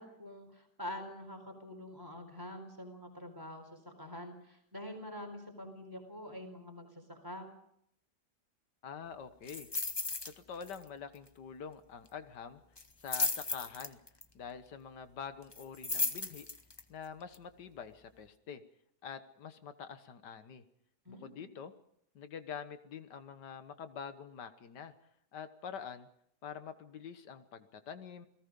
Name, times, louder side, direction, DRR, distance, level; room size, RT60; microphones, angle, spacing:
voice 1, 0.0-7.5 21.0-21.5, left 1 dB, 10° right, 5 dB, 4.3 m, -46 dB
voice 2, 8.8-9.7 10.2-12.6 13.0-14.0 14.3-16.5 16.9-18.6 19.0-20.6 21.1-21.7 22.2-24.9 25.3-26.1 26.4-28.3, left 7 dB, 80° left, 10 dB, 1.9 m, -46 dB
sound 1, 9.5-10.3 10.6-10.9 11.1-11.2 12.8-14.2 15.5-16.8 17.3-17.4, left 3 dB, 25° left, 0.6 m, -35 dB
29.0 x 18.0 x 5.3 m, 0.73 s
omnidirectional pair, 1.8 m